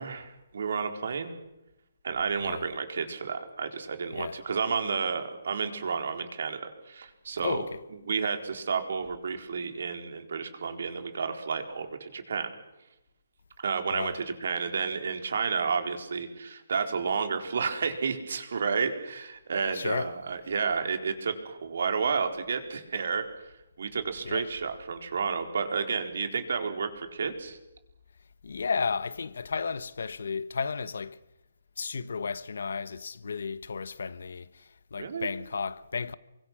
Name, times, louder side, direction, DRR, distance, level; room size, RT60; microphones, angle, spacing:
voice 1, 0.0-1.3 2.0-7.6 8.1-12.5 13.6-23.2 23.8-27.6 35.0-35.3, right 5 dB, 60° right, 4.3 m, -31 dB
voice 2, 7.4-7.8 13.9-14.1 19.7-20.1 24.2-24.5 28.4-31.2 31.8-36.1, left 5 dB, 70° left, 1.3 m, -33 dB
29.5 x 24.0 x 6.4 m
hypercardioid pair, 175°, 0 cm